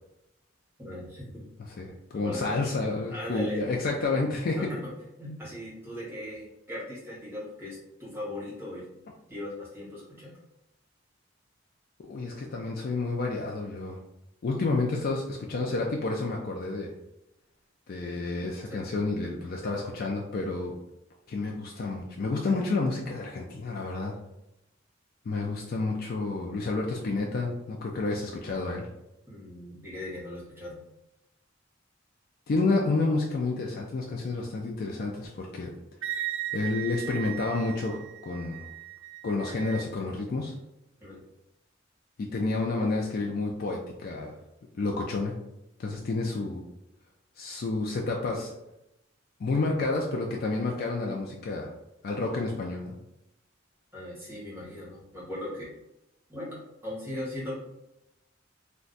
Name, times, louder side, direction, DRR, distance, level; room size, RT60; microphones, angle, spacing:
voice 1, 0.8-1.5 2.1-2.6 3.1-3.6 4.6-4.8 5.2-8.8 9.3-10.4 18.0-18.2 18.6-18.8 29.3-30.9 41.0-41.2 53.9-55.7 56.3-57.5, left 1 dB, 10° right, -7 dB, 1.1 m, -38 dB
voice 2, 1.8-4.6 12.0-14.0 14.4-16.9 17.9-20.7 21.3-24.2 25.3-28.9 32.5-35.7 36.5-38.7 39.2-40.5 42.2-44.4 44.8-45.4 45.8-46.6 47.4-48.6 49.4-51.7 52.0-53.0, left 3 dB, 50° left, -1 dB, 0.4 m, -30 dB
Wind instrument woodwind instrument, 36.0-39.9, right 12 dB, 90° right, 0.4 m, -37 dB
2.5 x 2.2 x 3.8 m, 0.89 s
head